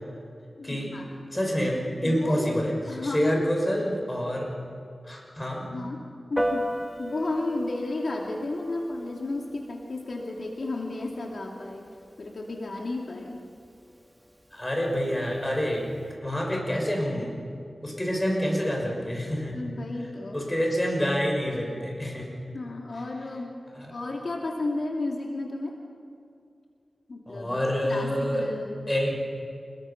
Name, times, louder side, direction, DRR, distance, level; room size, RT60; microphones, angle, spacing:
voice 1, 0.6-1.1 2.0-2.6 2.9-3.5 5.7-6.7 7.0-11.9 12.2-13.4 19.5-20.4 22.5-23.6 23.9-25.8 27.1-28.8, left 2 dB, 70° left, 0 dB, 2.4 m, -33 dB
voice 2, 1.3-2.7 3.0-4.5 5.0-5.7 14.5-15.9 16.2-17.3 17.8-19.6 20.3-22.4 27.3-28.5 28.9-29.1, equal, 20° left, 0 dB, 6.0 m, -27 dB
Piano, 6.4-16.1, equal, 10° right, 2.0 m, -38 dB
28.0 x 21.5 x 5.8 m, 2.4 s
wide cardioid pair, 65°, 0 cm